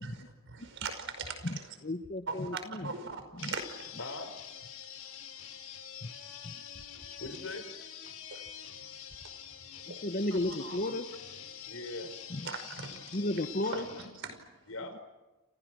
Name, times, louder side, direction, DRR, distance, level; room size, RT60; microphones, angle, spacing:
voice 1, 0.5-1.6 2.3-3.9 8.3-8.4 9.9-10.0 10.3-10.9 12.4-13.2 13.7-14.4, right 4 dB, 60° right, 9 dB, 5.3 m, -40 dB
voice 2, 1.4-2.9 3.3-3.5 6.0-6.1 6.4-6.6 9.9-11.1 12.3-12.5 13.1-13.9, left 1 dB, 40° left, 9 dB, 1.2 m, -34 dB
sound 1, 3.4-14.1, left 9 dB, 85° left, 5.5 m, -46 dB
voice 3, 4.0-4.4 6.9-7.7 11.7-12.1 14.7-15.0, left 2 dB, 65° left, 8 dB, 5.0 m, -41 dB
29.0 x 28.5 x 6.3 m, 1.1 s
head